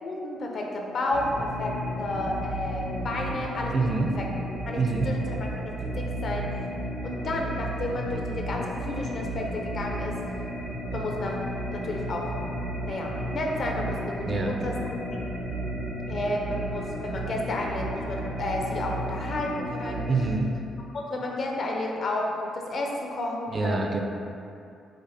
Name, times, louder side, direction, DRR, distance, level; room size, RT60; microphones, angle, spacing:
voice 1, 0.0-4.3 4.7-6.5 7.0-10.1 10.9-11.4 11.7-12.4 12.8-14.8 15.1-15.2 16.1-20.1 20.9-24.0, left 2 dB, 50° left, 0 dB, 0.5 m, -31 dB
sound 1, 1.1-20.4, right 1 dB, 85° right, 1.1 m, -33 dB
voice 2, 3.7-4.1 4.7-5.1 14.2-14.5 20.1-20.5 23.5-24.0, right 3 dB, 40° right, 2 dB, 0.3 m, -26 dB
5.0 x 2.0 x 2.7 m, 2.6 s
cardioid pair, 90°, 0 cm